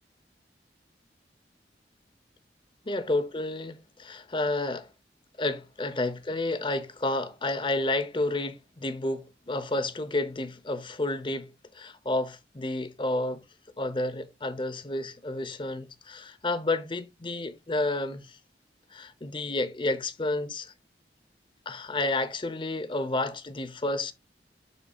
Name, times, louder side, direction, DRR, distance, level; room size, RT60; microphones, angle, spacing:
voice 1, 2.9-4.9 5.4-11.5 11.7-13.4 13.8-18.4 18.9-20.7 21.7-24.1, left 2 dB, 30° left, 0.8 m, -30 dB
12.0 x 4.2 x 2.3 m
head